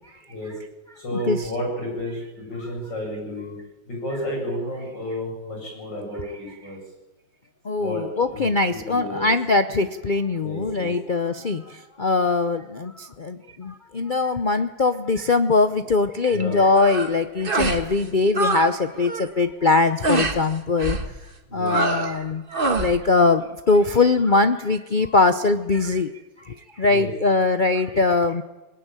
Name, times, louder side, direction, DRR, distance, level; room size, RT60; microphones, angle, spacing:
voice 1, 1.0-3.6 3.9-6.8 7.8-9.3 10.4-10.9 16.3-16.6 21.5-21.7 26.9-27.1, equal, 65° left, 0 dB, 8.6 m, -31 dB
voice 2, 7.7-11.6 12.0-12.9 14.0-19.1 19.4-21.0 21.5-22.4 22.8-23.4 23.7-26.1 26.8-28.4, left 3 dB, 85° left, 10 dB, 0.4 m, -21 dB
sound 1, 16.8-17.1 17.4-17.8 18.1-18.7 19.0-19.3 20.0-20.4 20.8-21.1 21.7-22.2 22.5-22.9, right 2 dB, 30° right, 1.7 m, -24 dB
21.0 x 19.0 x 9.1 m, 1.1 s
omnidirectional pair, 2.1 m